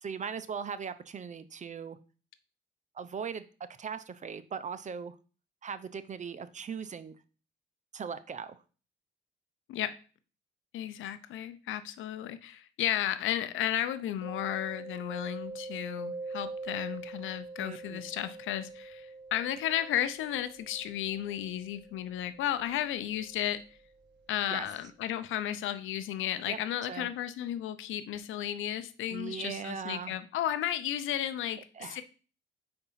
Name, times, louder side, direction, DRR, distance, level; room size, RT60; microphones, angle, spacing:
voice 1, 0.0-2.0 2.9-3.4 3.8-5.2 5.6-7.2 7.9-8.6 17.6-18.0 24.5-24.7 26.5-26.6 26.9-27.1 29.1-30.1 31.7-32.0, right 6 dB, 35° right, 13 dB, 0.6 m, -39 dB
voice 2, 10.7-23.6 24.3-32.0, left 11 dB, 80° left, 12 dB, 0.6 m, -33 dB
Mallet percussion, 14.2-23.8, right 3 dB, 60° right, 1.4 m, -44 dB
5.0 x 4.4 x 5.6 m, 0.37 s
cardioid pair, 90°, 20 cm